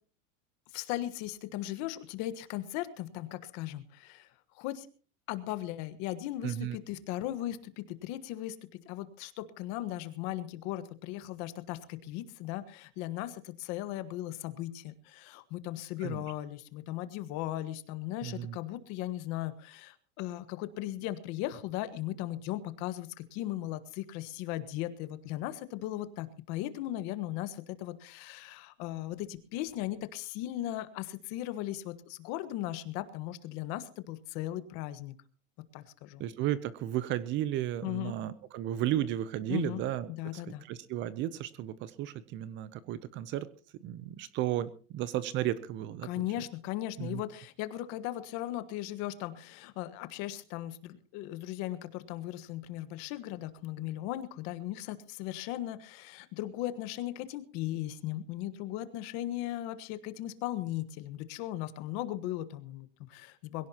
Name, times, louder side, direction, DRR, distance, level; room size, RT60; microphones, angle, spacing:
voice 1, 0.7-4.3 4.5-4.9 5.3-35.1 35.7-36.2 37.8-38.1 39.5-39.8 40.1-40.6 46.0-63.7, left 14 dB, 45° left, 12 dB, 1.5 m, -37 dB
voice 2, 6.4-6.8 16.0-16.2 18.2-18.6 36.2-43.5 43.8-46.1 47.0-47.2, right 12 dB, 30° right, 16 dB, 0.7 m, -34 dB
22.0 x 17.0 x 2.9 m, 0.39 s
supercardioid pair, 160°, 38 cm